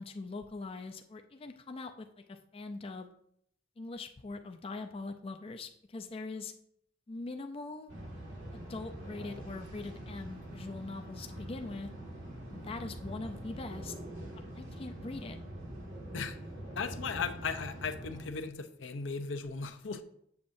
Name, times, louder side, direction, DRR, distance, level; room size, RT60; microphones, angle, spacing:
voice 1, 0.0-3.1 3.8-6.5 7.1-7.9 8.5-11.9 12.5-13.9 14.5-15.4, left 3 dB, 30° left, 6 dB, 0.4 m, -42 dB
sound 1, 7.9-18.3, right 1 dB, 85° right, 1.7 m, -44 dB
voice 2, 16.8-20.0, left 5 dB, 85° left, 9 dB, 0.6 m, -37 dB
7.4 x 7.1 x 2.6 m, 0.70 s
head